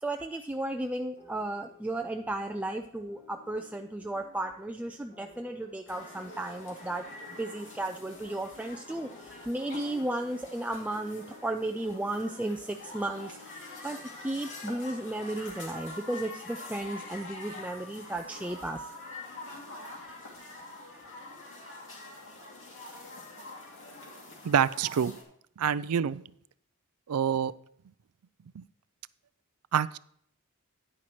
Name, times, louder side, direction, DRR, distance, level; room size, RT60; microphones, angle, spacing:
voice 1, 0.0-7.1 7.4-18.9, right 1 dB, 5° right, 4 dB, 0.3 m, -34 dB
sound 1, 1.2-18.0, left 4 dB, 40° left, 3.4 m, -57 dB
sound 2, 5.9-25.2, left 2 dB, 60° left, 2.5 m, -45 dB
voice 2, 24.4-25.1 25.6-26.2 27.1-27.5 28.6-28.7 29.7-30.0, right 8 dB, 80° right, 18 dB, 0.4 m, -26 dB
10.0 x 9.9 x 3.1 m, 0.65 s
head